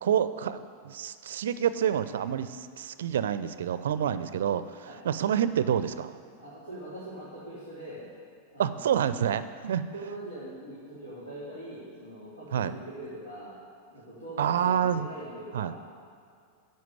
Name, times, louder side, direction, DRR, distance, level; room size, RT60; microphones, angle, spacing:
voice 1, 0.0-6.1 8.6-9.8 12.5-12.7 14.4-15.1 15.5-15.7, right 9 dB, 60° right, 13 dB, 0.5 m, -28 dB
voice 2, 6.4-8.1 8.5-9.2 9.9-13.6 13.9-15.8, right 1 dB, 80° left, -10 dB, 3.5 m, -42 dB
11.0 x 7.7 x 8.1 m, 2.2 s
figure-of-eight pair, 90°, 0 cm